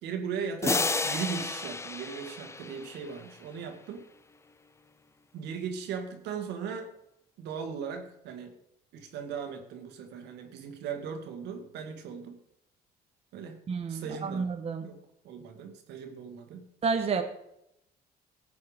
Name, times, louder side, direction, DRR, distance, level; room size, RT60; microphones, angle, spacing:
voice 1, 0.0-4.0 5.3-6.9 7.4-8.5 8.9-12.4 13.3-13.6 13.9-14.5 14.8-16.7, right 6 dB, 85° right, 5 dB, 2.2 m, -38 dB
sound 1, 0.6-3.3, left 3 dB, 15° left, 0.7 m, -31 dB
voice 2, 13.7-14.9 16.8-17.2, right 5 dB, 35° right, 5 dB, 1.3 m, -30 dB
15.5 x 8.6 x 5.2 m, 0.80 s
cardioid pair, 110°, 17 cm